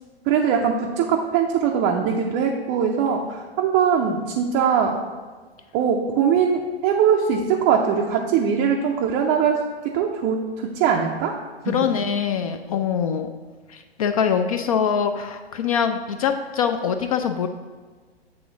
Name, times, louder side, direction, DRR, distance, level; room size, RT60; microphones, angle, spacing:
voice 1, 0.3-5.0 5.7-9.6 9.8-11.3 11.6-11.7, right 7 dB, 20° right, 0 dB, 0.5 m, -21 dB
voice 2, 11.7-13.3 13.7-17.5, left 7 dB, 35° left, 8 dB, 0.4 m, -23 dB
7.6 x 3.7 x 5.9 m, 1.4 s
figure-of-eight pair, 105°, 31 cm